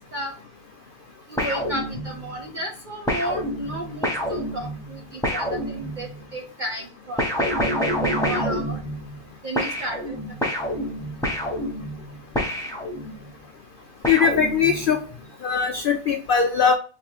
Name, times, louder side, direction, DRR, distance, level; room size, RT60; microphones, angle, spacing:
voice 1, 1.3-7.6 8.2-8.8 9.4-10.2, equal, 60° right, 2 dB, 0.5 m, -33 dB
sound 1, 1.4-2.4 3.1-6.2 7.2-9.3 9.6-13.3 14.0-15.0, equal, ahead, 1.0 m, -27 dB
voice 2, 14.1-15.0 15.4-16.7, left 6 dB, 80° left, 5 dB, 0.4 m, -20 dB
3.7 x 3.3 x 3.2 m, 0.37 s
omnidirectional pair, 1.5 m